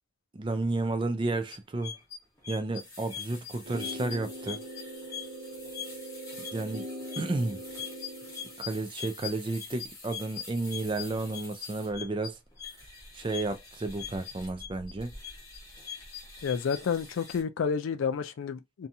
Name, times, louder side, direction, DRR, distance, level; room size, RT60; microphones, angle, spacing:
voice 1, 0.3-1.9 2.5-4.6 6.5-6.9 7.2-7.6 8.6-12.4 13.1-15.1, right 2 dB, 25° right, 0.3 m, -32 dB
sound 1, 1.5-17.4, left 6 dB, 15° left, 0.8 m, -43 dB
sound 2, 3.6-8.6, right 1 dB, 80° right, 0.5 m, -41 dB
voice 2, 16.4-18.9, left 6 dB, 85° left, 0.4 m, -30 dB
2.7 x 2.3 x 2.6 m
head